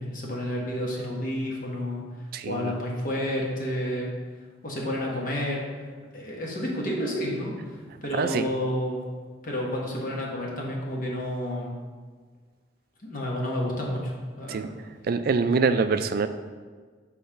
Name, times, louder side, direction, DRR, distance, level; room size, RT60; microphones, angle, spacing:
voice 1, 0.0-2.0 2.4-4.1 4.6-5.6 6.1-9.0 9.4-11.8 13.0-14.7, equal, 45° left, -2 dB, 1.2 m, -30 dB
voice 2, 2.3-2.8 8.1-8.5 14.5-14.7 15.1-16.3, right 4 dB, 50° right, 10 dB, 0.3 m, -24 dB
5.5 x 3.3 x 5.5 m, 1.5 s
head